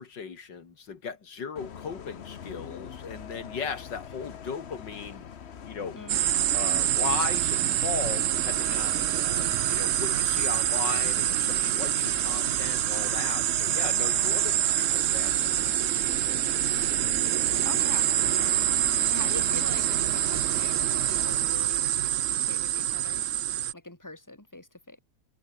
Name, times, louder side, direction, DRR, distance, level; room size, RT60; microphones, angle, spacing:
voice 1, 0.0-5.3 5.6-6.0 6.5-15.4 15.6-16.4, left 6 dB, 85° left, 2.9 m, -37 dB
Bus, 1.6-21.4, left 7 dB, 45° left, 1.1 m, -44 dB
voice 2, 5.9-6.5 14.1-14.5 17.6-18.7 18.9-22.1 22.3-23.2 23.7-25.0, left 2 dB, 10° left, 3.4 m, -43 dB
sound 1, 6.1-23.7, right 12 dB, 65° right, 0.8 m, -26 dB
omnidirectional pair, 1.9 m